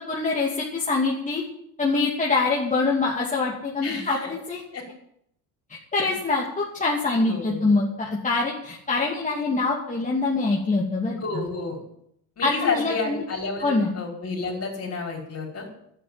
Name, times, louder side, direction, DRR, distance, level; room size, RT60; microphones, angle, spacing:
voice 1, 0.1-1.4 1.8-4.6 5.9-11.2 12.4-13.2 13.6-13.9, left 3 dB, 20° left, -3 dB, 2.6 m, -24 dB
voice 2, 3.8-4.3 4.7-4.9 6.0-6.1 7.1-7.8 11.2-11.8 12.4-15.7, left 4 dB, 35° left, 1 dB, 5.5 m, -30 dB
11.5 x 9.2 x 9.7 m, 0.73 s
cardioid pair, 110°, 39 cm